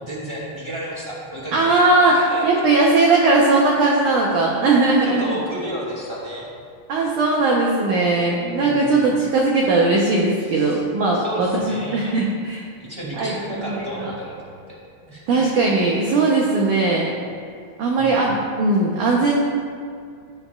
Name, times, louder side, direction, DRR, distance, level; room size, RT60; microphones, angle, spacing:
voice 1, 0.0-2.7 4.8-6.5 8.6-9.1 10.5-10.8 11.1-12.2 12.8-14.8 15.1-15.4 18.0-18.3, right 1 dB, 10° right, -6 dB, 1.4 m, -32 dB
voice 2, 1.5-5.4 6.9-11.5 11.9-12.6 13.2-14.1 15.3-17.2 17.8-19.4, right 3 dB, 90° right, -3 dB, 1.7 m, -19 dB
16.0 x 9.4 x 2.5 m, 2.3 s
omnidirectional pair, 5.0 m